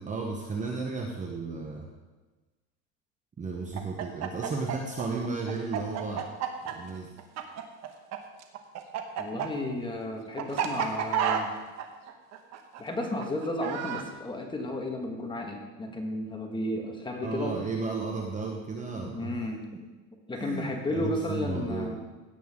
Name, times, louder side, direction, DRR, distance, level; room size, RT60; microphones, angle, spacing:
voice 1, 0.0-1.9 3.4-6.3 6.6-7.1 17.2-19.4 20.3-22.0, right 4 dB, 15° right, 1 dB, 1.0 m, -34 dB
Chicken rooster, 3.7-8.2 8.4-14.0, right 9 dB, 40° right, 1.1 m, -31 dB
voice 2, 9.2-11.5 12.8-17.6 19.0-19.6 20.3-22.0, left 1 dB, 10° left, 2 dB, 1.5 m, -33 dB
16.0 x 7.9 x 3.7 m, 1.2 s
supercardioid pair, 140°, 43 cm